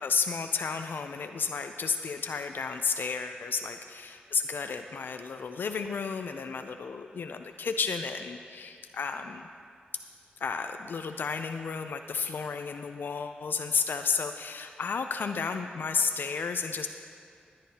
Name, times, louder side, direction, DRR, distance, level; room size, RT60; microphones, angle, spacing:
voice 1, 0.0-9.5 10.4-16.9, left 5 dB, 70° left, 7 dB, 0.4 m, -32 dB
18.5 x 9.0 x 2.8 m, 2.3 s
cardioid pair, 60°, 4 cm